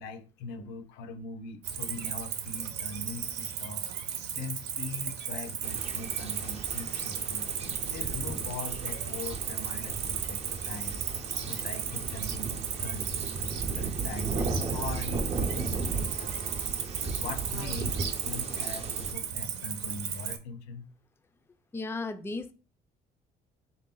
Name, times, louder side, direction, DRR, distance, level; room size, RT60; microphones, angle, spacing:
voice 1, 0.0-3.8 4.3-7.5 7.8-11.0 11.4-16.6 17.0-18.0 18.2-20.9, left 3 dB, 85° left, 0.7 m, -41 dB
Cricket, 1.6-20.4, right 8 dB, 85° right, 0.7 m, -35 dB
sound 1, 5.6-19.1, right 3 dB, 40° right, 0.6 m, -36 dB
voice 2, 21.7-22.5, left 3 dB, 15° left, 0.4 m, -35 dB
3.7 x 2.6 x 3.8 m
cardioid pair, 110°, 17 cm